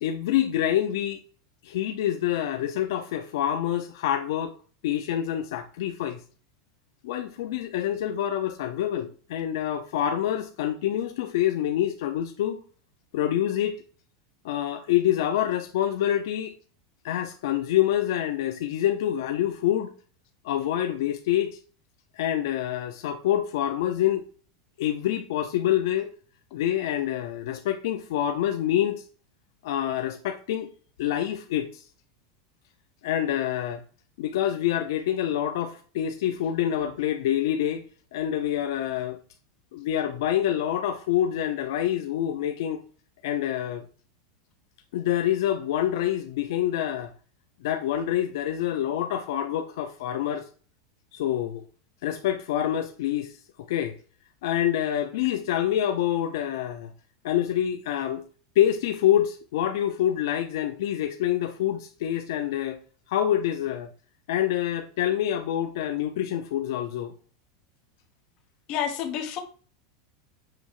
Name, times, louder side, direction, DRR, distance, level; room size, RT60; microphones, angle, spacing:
voice 1, 0.0-1.2 1.6-4.5 4.8-6.2 7.0-12.6 13.1-13.8 14.4-16.5 17.0-19.9 20.4-21.6 22.2-24.2 24.8-26.1 26.5-29.0 29.6-30.7 31.0-31.8 33.0-33.8 34.2-37.8 38.1-39.2 39.7-42.8 43.2-43.8 44.9-47.1 47.6-50.5 51.1-51.6 52.0-54.0 54.4-56.9 57.2-58.2 58.6-62.8 63.1-63.9 64.3-67.1, left 11 dB, 70° left, 0.7 m, -26 dB
voice 2, 68.7-69.4, left 9 dB, 40° left, 1.2 m, -29 dB
7.7 x 3.1 x 4.8 m
supercardioid pair, 155°, 2 cm